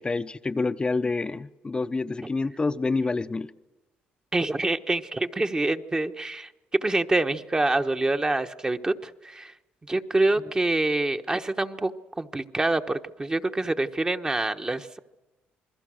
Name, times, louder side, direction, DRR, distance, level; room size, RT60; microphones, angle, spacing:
voice 1, 0.0-3.5, left 3 dB, 25° left, 0.7 m, -27 dB
voice 2, 4.3-9.5 9.9-11.9 12.2-15.0, right 2 dB, 20° right, 1.1 m, -26 dB
28.0 x 21.5 x 6.4 m
cardioid pair, 90°, 4 cm